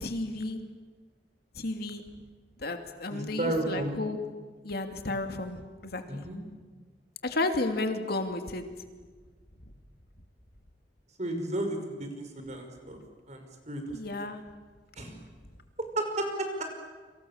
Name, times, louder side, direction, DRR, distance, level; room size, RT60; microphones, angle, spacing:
voice 1, 0.0-0.6 1.6-2.0 2.6-4.2 4.6-6.2 7.2-8.6 13.9-14.4, left 2 dB, 60° left, 6 dB, 2.8 m, -32 dB
voice 2, 3.1-4.0 6.1-6.4 11.2-13.0 13.3-14.1 15.0-15.1 16.0-16.6, right 1 dB, 40° right, 5 dB, 5.5 m, -33 dB
29.0 x 26.0 x 7.4 m, 1.4 s
head